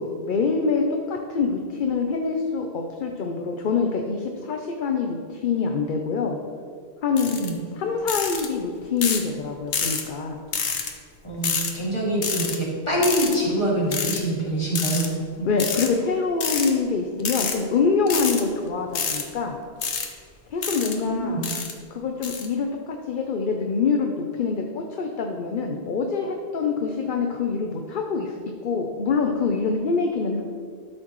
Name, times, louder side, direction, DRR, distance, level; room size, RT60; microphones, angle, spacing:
voice 1, 0.0-6.4 7.0-7.4 7.7-10.4 15.4-19.6 20.5-21.4 21.9-28.3 28.6-30.4, left 5 dB, 55° left, 3 dB, 0.8 m, -25 dB
sound 1, 7.2-7.5 8.1-8.5 9.0-9.3 9.7-10.0 10.5-10.9 11.4-11.7 12.2-12.6 13.0-13.4 13.9-14.2 14.7-15.1 15.6-15.9 16.4-16.7 17.2-17.6 18.1-18.4 18.9-19.2 19.8-20.1 20.6-21.0 21.4-21.7 22.2-22.5, left 6 dB, 85° left, 1.2 m, -27 dB
voice 2, 11.2-15.1 15.4-15.5 21.0-21.5, right 1 dB, 25° left, -5 dB, 2.3 m, -25 dB
12.5 x 6.6 x 3.1 m, 2.1 s
omnidirectional pair, 1.1 m